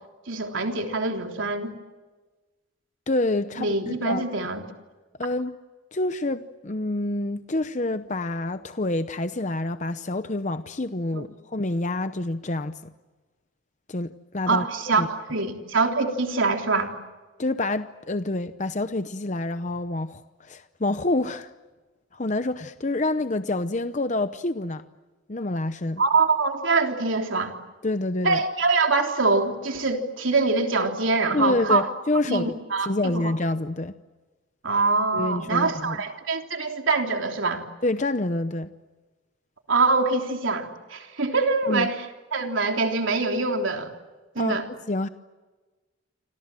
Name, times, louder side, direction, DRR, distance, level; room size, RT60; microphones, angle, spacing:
voice 1, 0.3-1.7 3.6-4.6 11.1-11.3 14.5-16.9 26.0-27.5 28.2-31.9 32.3-33.3 34.6-37.6 39.7-42.0 42.3-43.9 44.3-44.6, right 3 dB, 75° right, 3.4 m, -24 dB
voice 2, 3.1-3.7 4.0-4.3 5.2-5.5 5.9-12.9 13.9-14.7 14.9-15.1 17.4-21.5 22.1-24.8 25.3-26.0 27.8-28.4 31.3-33.9 35.1-36.0 37.8-38.7 41.7-41.9 44.4-44.6 44.9-45.1, left 2 dB, 35° left, 0.8 m, -27 dB
29.0 x 26.0 x 7.6 m
head